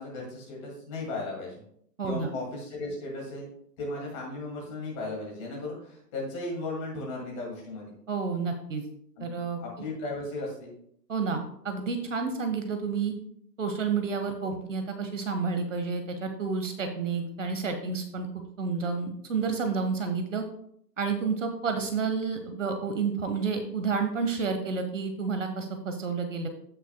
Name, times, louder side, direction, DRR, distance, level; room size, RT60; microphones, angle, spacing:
voice 1, 0.0-1.6 2.0-3.5 3.8-7.9 9.2-9.3 9.6-10.7, left 2 dB, 20° left, -2 dB, 2.3 m, -36 dB
voice 2, 2.0-2.3 8.1-8.8 9.2-9.6 11.1-13.1 13.6-18.3 18.6-20.4 21.0-26.5, right 5 dB, 50° right, 6 dB, 1.1 m, -30 dB
14.5 x 6.3 x 2.3 m, 0.67 s
hypercardioid pair, 165°, 49 cm